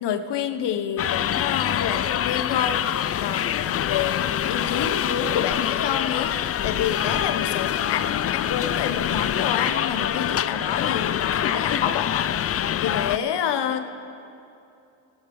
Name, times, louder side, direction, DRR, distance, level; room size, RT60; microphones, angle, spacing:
voice 1, 0.0-6.3 6.6-13.9, left 8 dB, 65° left, 9 dB, 1.0 m, -28 dB
sound 1, 1.0-13.2, left 10 dB, 35° left, 0.4 m, -25 dB
13.5 x 10.0 x 7.1 m, 2.7 s
cardioid pair, 85°, 44 cm